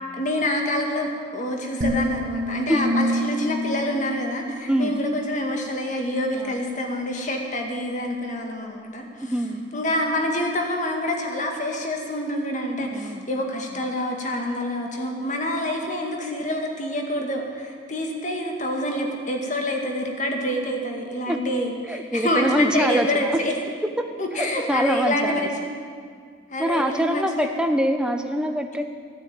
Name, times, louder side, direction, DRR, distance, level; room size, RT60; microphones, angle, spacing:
voice 1, 0.2-9.1 9.7-23.5 24.2-25.5 26.5-27.5, left 1 dB, 40° left, 2 dB, 1.9 m, -27 dB
sound 1, 1.8-5.1, equal, 40° right, 1.5 m, -28 dB
voice 2, 4.7-5.0 6.4-6.5 9.2-9.7 12.9-13.3 21.3-21.4 21.8-23.4 24.0-24.1 24.3-25.5 26.6-28.8, equal, 5° right, 5 dB, 0.8 m, -24 dB
15.5 x 9.7 x 8.8 m, 2.1 s
head